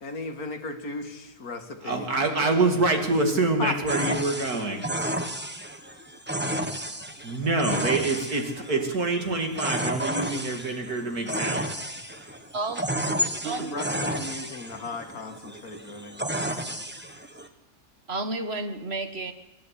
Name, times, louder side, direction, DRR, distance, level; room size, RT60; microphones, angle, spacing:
voice 1, 0.0-2.1 2.4-2.5 3.6-3.8 13.5-16.8, left 3 dB, 70° left, 6 dB, 2.2 m, -36 dB
voice 2, 1.8-4.8 7.2-11.7, right 3 dB, 75° right, 3 dB, 3.0 m, -26 dB
sound 1, 3.9-17.5, equal, 10° right, 1.2 m, -32 dB
voice 3, 13.4-13.8 18.1-19.3, right 3 dB, 45° right, 8 dB, 1.6 m, -31 dB
28.0 x 11.5 x 8.5 m, 1.0 s
omnidirectional pair, 1.6 m